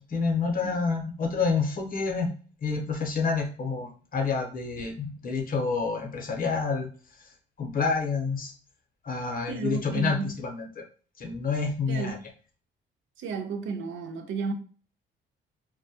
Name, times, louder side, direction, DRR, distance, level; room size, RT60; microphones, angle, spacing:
voice 1, 0.0-2.3 2.6-6.9 7.6-8.5 9.0-10.8 11.2-12.2, left 4 dB, 45° left, 0.8 m, -28 dB
voice 2, 9.5-10.3 11.9-12.2 13.2-14.5, right 5 dB, 80° right, 0.5 m, -33 dB
2.2 x 2.1 x 2.7 m
cardioid pair, 90°, 20 cm